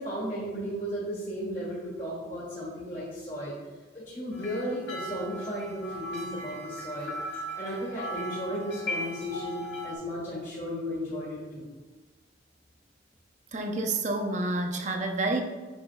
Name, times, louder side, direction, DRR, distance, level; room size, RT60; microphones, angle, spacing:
voice 1, 0.0-3.6 3.9-7.1 7.5-11.7, equal, 40° left, -7 dB, 1.7 m, -35 dB
sound 1, 4.3-9.9, equal, 70° left, 1.6 m, -38 dB
voice 2, 13.5-15.4, right 2 dB, 40° right, 3 dB, 0.7 m, -29 dB
8.7 x 5.7 x 2.3 m, 1.3 s
head